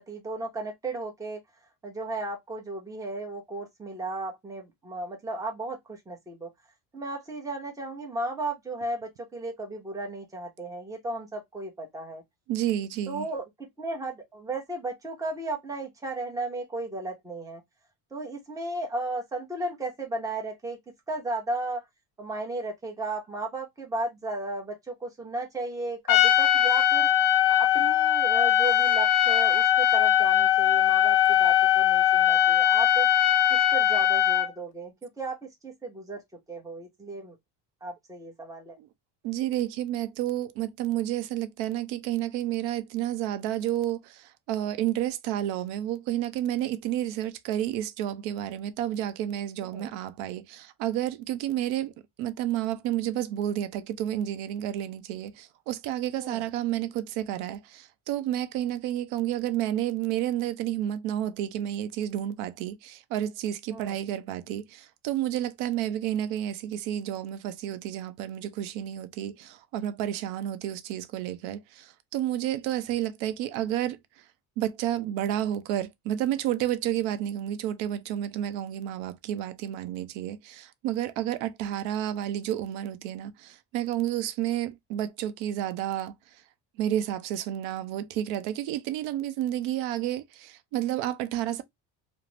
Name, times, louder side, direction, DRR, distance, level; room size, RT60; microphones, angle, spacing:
voice 1, 0.0-1.4 1.8-6.5 6.9-12.2 13.1-17.6 18.1-20.8 21.1-21.8 22.2-27.1 27.5-33.1 33.5-36.2 36.5-37.4 37.8-38.8 49.6-49.9 56.2-56.4 63.7-64.0, right 2 dB, 10° right, 0.7 m, -35 dB
voice 2, 12.5-13.3 38.8-38.9 39.2-51.9 52.2-74.0 74.6-86.1 86.8-91.6, right 12 dB, 85° right, 0.6 m, -30 dB
Trumpet, 26.1-34.5, left 11 dB, 55° left, 0.5 m, -21 dB
2.4 x 2.0 x 3.1 m
cardioid pair, 130°, 45 cm